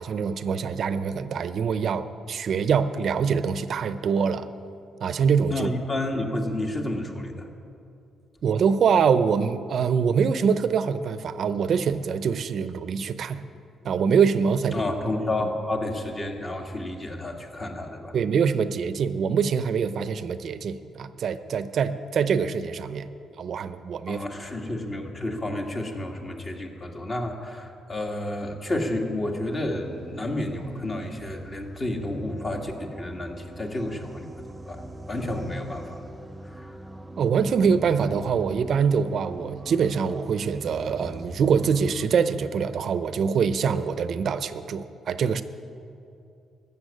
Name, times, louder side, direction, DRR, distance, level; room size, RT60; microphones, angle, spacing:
voice 1, 0.0-4.5 5.0-5.7 8.4-13.4 13.8-14.8 18.1-23.1 23.4-24.2 37.2-45.4, right 6 dB, 60° right, 12 dB, 0.7 m, -24 dB
voice 2, 5.5-7.5 14.7-18.1 24.1-36.0 36.4-36.8, left 1 dB, 35° left, 2 dB, 1.9 m, -31 dB
sound 1, 29.4-42.1, right 1 dB, 15° right, 0.4 m, -42 dB
14.5 x 7.3 x 9.9 m, 2.7 s
cardioid pair, 90°, 0 cm